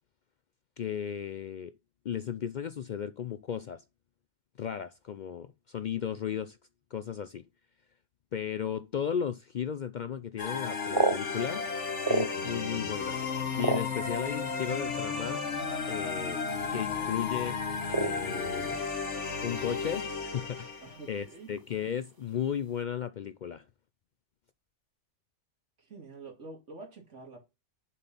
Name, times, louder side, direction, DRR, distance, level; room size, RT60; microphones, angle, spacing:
voice 1, 0.8-1.7 2.0-3.8 4.6-6.6 6.9-7.4 8.3-11.7 12.1-13.2 13.6-15.4 15.9-16.4 16.7-17.6 18.0-18.8 19.4-23.6, left 8 dB, 60° left, 0.5 m, -35 dB
sound 1, 10.4-21.1, left 5 dB, 75° left, 1.6 m, -34 dB
sound 2, 10.6-12.7 13.1-14.5 15.3-15.4 15.7-16.0 16.3-16.7 17.0-17.2 17.9-18.9 19.1-20.0 20.3-20.4 20.8-21.1 21.6-22.0, right 3 dB, 25° right, 0.6 m, -31 dB
sound 3, 12.3-18.8, left 1 dB, 40° right, 1.7 m, -48 dB
voice 2, 20.8-21.5 25.9-27.4, right 3 dB, 85° right, 2.5 m, -47 dB
6.9 x 4.4 x 5.4 m
omnidirectional pair, 1.2 m